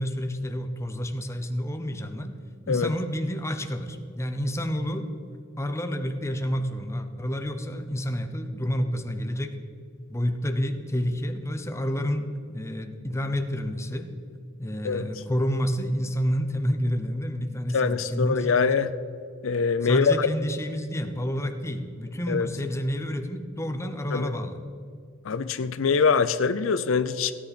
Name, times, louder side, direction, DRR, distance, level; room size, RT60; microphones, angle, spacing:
voice 1, 0.0-2.4 2.7-5.1 5.6-9.5 10.1-14.1 14.6-18.5 19.8-24.6, equal, 15° left, 7 dB, 0.8 m, -29 dB
voice 2, 17.7-18.9 19.4-20.3 22.3-22.5 24.1-24.3 25.2-27.3, left 5 dB, 70° left, 12 dB, 0.5 m, -23 dB
16.0 x 9.9 x 4.3 m, 2.4 s
head